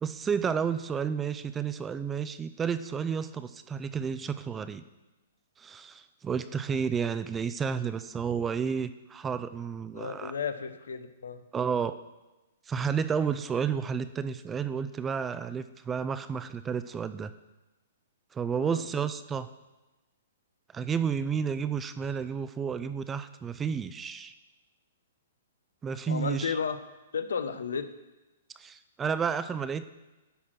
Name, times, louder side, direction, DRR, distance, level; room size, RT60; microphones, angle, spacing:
voice 1, 0.0-4.8 5.6-10.3 11.5-11.9 12.7-17.3 18.3-19.5 20.7-24.3 25.8-26.6 28.6-29.8, right 6 dB, 15° right, 12 dB, 0.4 m, -31 dB
voice 2, 9.9-11.4 18.6-18.8 26.1-26.8 27.1-27.9, left 6 dB, 85° left, 11 dB, 0.8 m, -33 dB
11.0 x 4.3 x 6.2 m, 1.1 s
hypercardioid pair, 140°, 0 cm